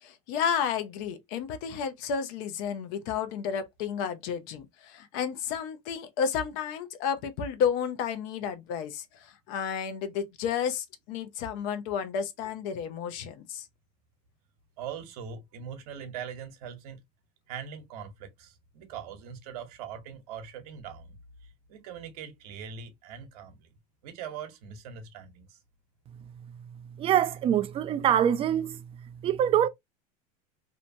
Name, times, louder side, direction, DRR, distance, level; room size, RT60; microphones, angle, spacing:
voice 1, 0.0-13.6, left 7 dB, 65° left, 0.6 m, -32 dB
voice 2, 14.8-17.0 17.5-21.1 21.7-23.6 24.0-25.6, right 7 dB, 80° right, 0.9 m, -41 dB
voice 3, 27.0-28.8 29.2-29.7, right 10 dB, 30° right, 0.4 m, -24 dB
2.8 x 2.2 x 2.6 m
supercardioid pair, 125°, 19 cm